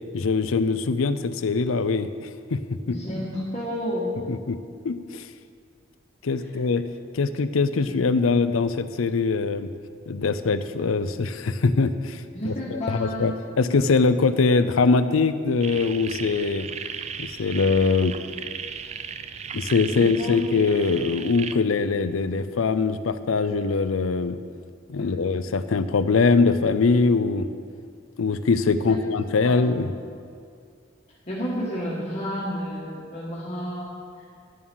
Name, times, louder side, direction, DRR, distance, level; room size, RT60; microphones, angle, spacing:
voice 1, 0.1-3.0 4.3-4.6 4.8-5.2 6.2-6.9 7.1-9.7 10.1-16.7 17.2-18.2 19.5-24.4 24.9-27.5 28.2-29.9, left 4 dB, 85° left, 12 dB, 0.5 m, -22 dB
voice 2, 2.9-4.1 6.4-6.6 7.7-7.9 12.3-13.3 19.9-20.5 25.0-25.2 28.9-29.0 29.4-29.7 31.3-34.0, equal, 35° left, -6 dB, 1.5 m, -31 dB
sound 1, 15.6-21.5, right 7 dB, 35° right, 0.4 m, -36 dB
10.5 x 7.4 x 6.2 m, 2.3 s
head